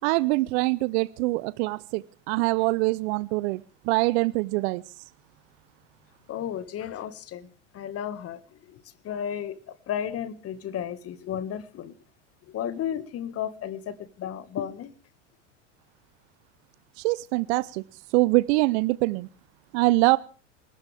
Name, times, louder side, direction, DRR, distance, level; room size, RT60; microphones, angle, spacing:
voice 1, 0.0-4.8 17.0-17.8 18.1-19.3 19.7-20.2, right 22 dB, 60° right, 0.8 m, -24 dB
voice 2, 6.3-7.5 7.7-11.9 12.5-14.9, left 9 dB, 40° left, 1.8 m, -33 dB
27.5 x 13.5 x 3.5 m
hypercardioid pair, 90°, 37 cm